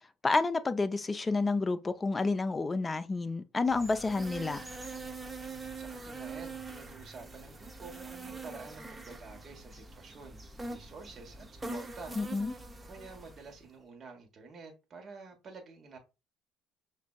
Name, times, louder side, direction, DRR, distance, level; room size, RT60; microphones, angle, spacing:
voice 1, 0.2-4.6 12.2-12.5, left 3 dB, 25° left, 0.5 m, -30 dB
sound 1, 3.6-13.6, right 3 dB, 20° right, 0.7 m, -44 dB
voice 2, 5.7-10.4 10.7-12.1 12.8-16.0, right 4 dB, 45° right, 1.3 m, -49 dB
5.9 x 2.6 x 2.3 m
hypercardioid pair, 65°, 0 cm